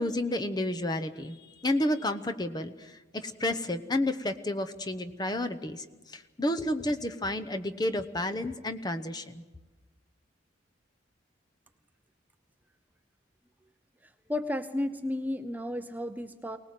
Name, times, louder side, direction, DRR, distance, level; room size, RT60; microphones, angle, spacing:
voice 1, 0.0-9.4, left 1 dB, 20° left, 7 dB, 0.9 m, -31 dB
voice 2, 14.0-16.6, left 1 dB, 10° right, 8 dB, 0.7 m, -33 dB
24.0 x 19.0 x 7.6 m, 1.2 s
head